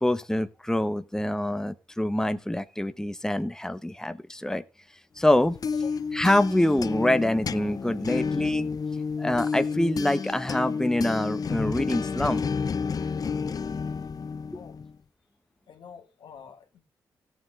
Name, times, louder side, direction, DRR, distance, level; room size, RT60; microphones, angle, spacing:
voice 1, 0.0-4.6 5.2-5.6 6.1-8.7 9.2-12.4, left 1 dB, 5° left, 1.2 m, -25 dB
sound 1, 5.3-14.9, left 5 dB, 50° left, 0.7 m, -30 dB
voice 2, 15.7-16.8, left 7 dB, 75° left, 2.7 m, -46 dB
16.5 x 8.1 x 3.8 m
supercardioid pair, 50°, 8 cm